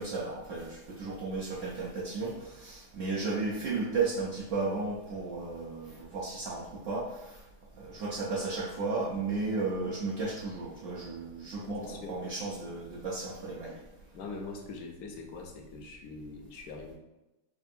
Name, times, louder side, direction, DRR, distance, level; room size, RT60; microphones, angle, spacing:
voice 1, 0.0-7.4 7.8-13.8, right 3 dB, 65° right, -6 dB, 0.9 m, -34 dB
voice 2, 11.6-12.2 14.1-16.9, left 3 dB, 75° left, 1 dB, 1.1 m, -43 dB
5.2 x 2.5 x 2.6 m, 0.99 s
omnidirectional pair, 1.7 m